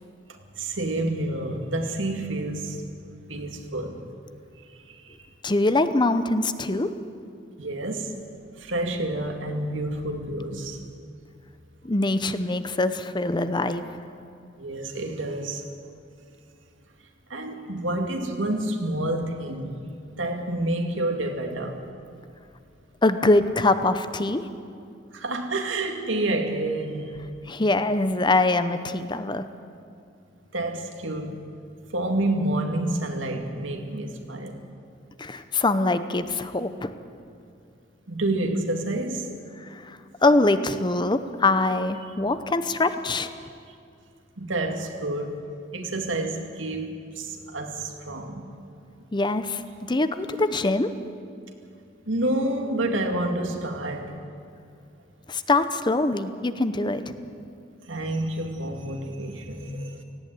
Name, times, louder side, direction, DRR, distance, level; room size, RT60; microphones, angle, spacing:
voice 1, 0.3-2.8 3.3-4.1 4.6-5.2 7.6-8.1 8.6-10.8 14.6-15.6 17.3-19.8 20.2-21.8 25.1-27.2 30.5-31.4 31.9-34.6 38.1-39.3 44.4-45.4 45.7-48.5 50.2-50.6 52.1-54.1 57.9-60.0, right 1 dB, 80° right, 4 dB, 2.2 m, -29 dB
voice 2, 5.4-6.9 11.8-13.8 23.0-24.4 27.5-29.4 35.2-36.9 39.6-43.3 49.1-49.6 49.9-50.9 55.3-57.2, left 2 dB, 25° left, 11 dB, 0.8 m, -23 dB
18.0 x 16.0 x 9.5 m, 2.4 s
head